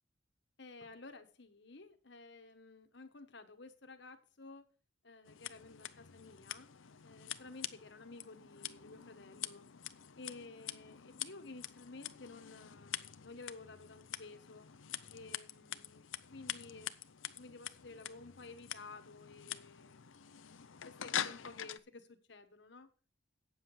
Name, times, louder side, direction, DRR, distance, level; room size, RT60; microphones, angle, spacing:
voice 1, 0.6-4.7 5.0-6.7 7.0-9.7 10.2-14.7 15.1-16.1 16.3-16.9 17.4-20.1 20.8-22.9, left 3 dB, 60° left, 1.3 m, -53 dB
Scissors, 5.3-21.8, left 10 dB, 75° left, 0.7 m, -45 dB
9.3 x 7.3 x 6.2 m
head